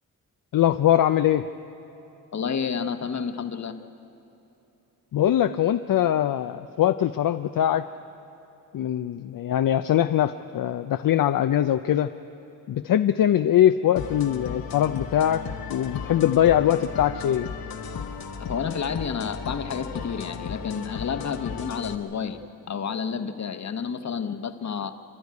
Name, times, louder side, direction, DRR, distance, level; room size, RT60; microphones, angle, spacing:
voice 1, 0.5-1.5 5.1-7.9 8.7-12.1 12.7-15.4 15.7-17.5, left 11 dB, 70° left, 9 dB, 0.5 m, -22 dB
voice 2, 2.3-3.8 18.4-22.4 22.7-24.9, left 6 dB, 50° left, 8 dB, 1.1 m, -30 dB
sound 1, 14.0-22.0, left 6 dB, 85° left, 1.3 m, -35 dB
28.0 x 12.5 x 9.5 m, 3.0 s
wide cardioid pair, 125°, 35 cm